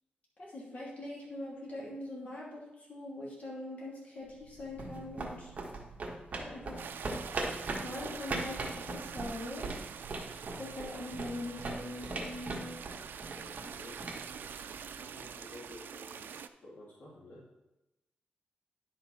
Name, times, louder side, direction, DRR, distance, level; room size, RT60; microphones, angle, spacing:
voice 1, 0.4-5.5 6.4-6.9 7.8-9.7 10.6-12.8, left 1 dB, 45° left, -5 dB, 2.9 m, -42 dB
sound 1, 4.3-15.1, right 2 dB, 45° right, 1.4 m, -40 dB
sound 2, 6.8-16.5, right 7 dB, 85° right, 0.4 m, -45 dB
voice 2, 13.3-14.0 14.3-17.4, left 1 dB, 65° left, -6 dB, 2.2 m, -53 dB
10.5 x 5.6 x 4.2 m, 0.96 s
wide cardioid pair, 140°, 3 cm